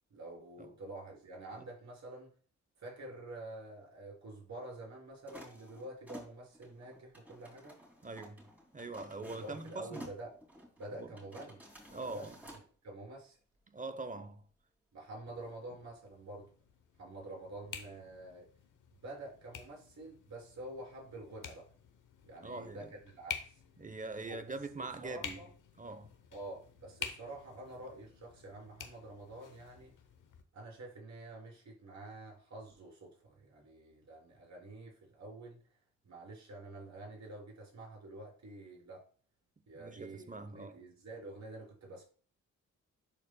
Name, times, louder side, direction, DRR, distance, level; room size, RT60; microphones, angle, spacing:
voice 1, 0.1-2.3 2.8-7.8 9.2-10.4 10.8-13.4 14.9-16.5 17.0-18.5 18.9-21.7 22.2-23.6 24.3-24.4 25.0-25.5 26.3-29.9 30.5-35.6 36.0-39.0 39.7-42.0, right 2 dB, 60° right, 3.6 m, -48 dB
sound 1, 5.3-12.7, equal, 5° right, 2.7 m, -53 dB
voice 2, 8.0-8.5 8.7-10.0 11.0-11.1 11.9-12.4 13.7-14.4 22.4-22.9 23.8-25.4 25.8-26.1 39.7-40.8, right 3 dB, 25° right, 0.8 m, -43 dB
sound 2, 15.3-30.4, left 7 dB, 85° left, 0.9 m, -50 dB
11.5 x 4.4 x 2.3 m
cardioid pair, 70°, 31 cm